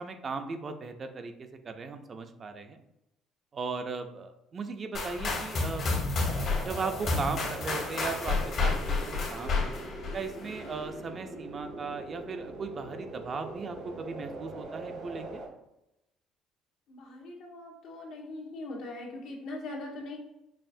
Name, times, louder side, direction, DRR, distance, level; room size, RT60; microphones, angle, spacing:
voice 1, 0.0-2.8 3.5-5.8 6.6-9.7 10.1-15.4, right 4 dB, 40° right, 7 dB, 0.4 m, -37 dB
sound 1, 4.9-10.8, left 3 dB, 55° left, 1.3 m, -31 dB
sound 2, 6.2-15.5, right 2 dB, 75° right, 1.2 m, -42 dB
voice 2, 16.9-20.2, left 2 dB, 75° left, -2 dB, 1.2 m, -41 dB
5.5 x 2.4 x 2.6 m, 0.88 s
cardioid pair, 100°, 0 cm